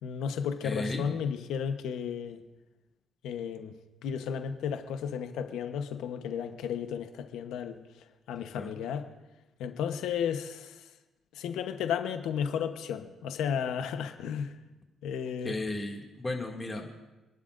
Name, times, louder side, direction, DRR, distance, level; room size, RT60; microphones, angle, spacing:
voice 1, 0.0-2.4 3.2-3.7 4.0-7.8 8.3-9.1 9.6-10.8 11.3-14.5 15.0-15.6, left 7 dB, 85° left, 7 dB, 1.0 m, -33 dB
voice 2, 0.6-1.1 8.5-8.8 15.4-16.9, left 2 dB, 20° left, 1 dB, 2.4 m, -34 dB
27.5 x 11.5 x 2.6 m, 1.1 s
cardioid pair, 90°, 0 cm